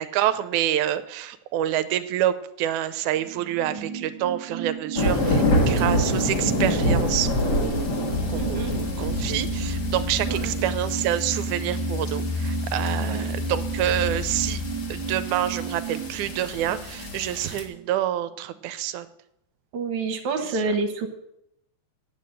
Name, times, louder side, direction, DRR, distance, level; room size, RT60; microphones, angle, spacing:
voice 1, 0.0-7.9 8.2-14.6 14.9-19.1 20.6-20.8, right 12 dB, 85° right, 13 dB, 2.1 m, -27 dB
sound 1, 3.1-18.2 18.5-18.6, right 9 dB, 50° right, 1.5 m, -34 dB
sound 2, 5.0-17.6, left 1 dB, 40° left, 1.9 m, -28 dB
voice 2, 5.3-6.0 8.4-8.7 10.2-10.6 13.0-13.2 19.7-21.1, right 4 dB, 70° right, 6 dB, 2.3 m, -29 dB
sound 3, 8.1-17.7, left 4 dB, 85° left, 2.1 m, -32 dB
9.1 x 8.5 x 7.6 m, 0.82 s
omnidirectional pair, 3.5 m